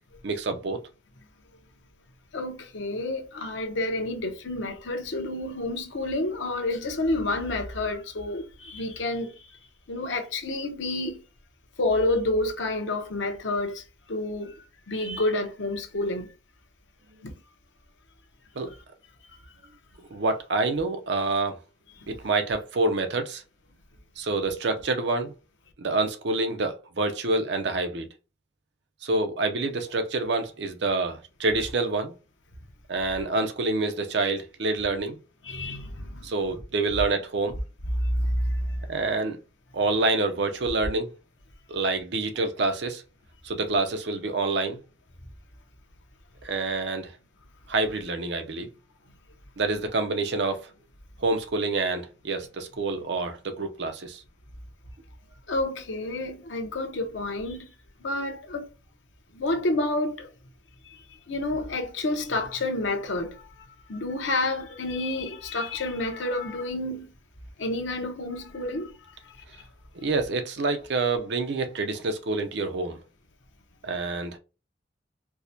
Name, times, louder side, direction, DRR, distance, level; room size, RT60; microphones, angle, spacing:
voice 1, 0.2-0.8 18.6-18.7 20.1-21.6 22.1-23.4 24.2-25.3 25.8-28.1 29.0-32.1 32.9-35.2 36.2-37.6 38.9-39.4 39.7-41.1 41.7-43.0 43.4-44.8 46.4-47.1 47.7-48.7 49.6-50.7 51.2-54.2 70.0-73.0 73.8-74.4, right 3 dB, 65° right, 0.6 m, -27 dB
voice 2, 2.3-9.3 9.9-11.2 11.8-13.8 14.1-16.3 17.2-17.3 22.0-22.1 35.4-36.3 38.0-38.9 55.5-57.7 58.0-58.7 59.3-60.3 60.9-61.0 61.3-67.1 67.6-68.9, left 2 dB, 90° left, 0.8 m, -29 dB
4.6 x 2.2 x 2.7 m
head